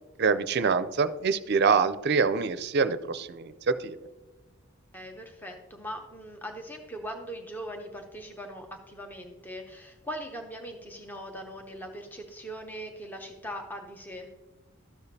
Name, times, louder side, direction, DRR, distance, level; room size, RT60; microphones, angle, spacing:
voice 1, 0.2-4.0, right 5 dB, 50° right, 12 dB, 0.4 m, -25 dB
voice 2, 4.9-14.3, equal, 10° left, 3 dB, 0.6 m, -40 dB
13.0 x 6.9 x 2.7 m, 1.2 s
head